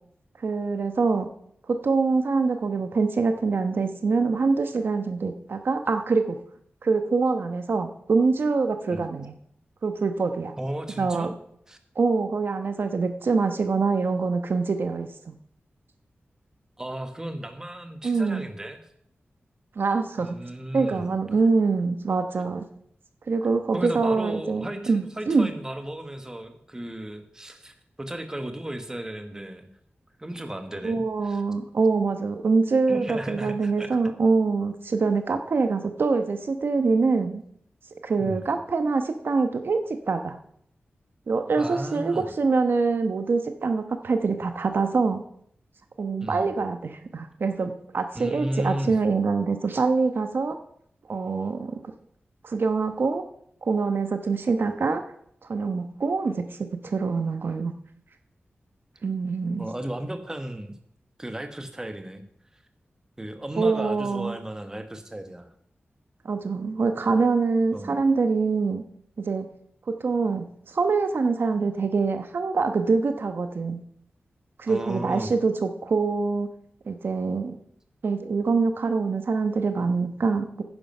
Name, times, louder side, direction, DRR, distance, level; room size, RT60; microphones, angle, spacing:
voice 1, 0.4-1.3 1.7-6.4 6.8-9.3 9.8-10.5 11.0-11.3 12.0-15.3 18.0-18.5 19.8-20.4 20.7-22.6 23.3-25.5 30.8-37.4 38.0-40.4 41.3-45.2 46.0-50.6 51.1-51.8 52.4-53.2 53.6-55.0 55.5-57.7 59.0-59.7 63.6-64.4 66.2-68.8 69.3-69.5 70.0-73.8 74.6-76.5 76.9-77.6 78.0-80.6, right 4 dB, 60° right, 7 dB, 1.0 m, -24 dB
voice 2, 10.6-11.3 11.7-11.8 16.8-18.8 20.2-21.4 23.7-29.7 30.2-31.4 32.9-33.9 38.2-38.4 41.6-42.3 46.2-46.5 48.1-48.9 59.6-60.7 61.2-62.2 63.2-65.5 67.7-68.0 74.7-75.3, right 1 dB, 15° right, 7 dB, 1.3 m, -34 dB
11.0 x 9.9 x 5.5 m, 0.67 s
wide cardioid pair, 135°, 4 cm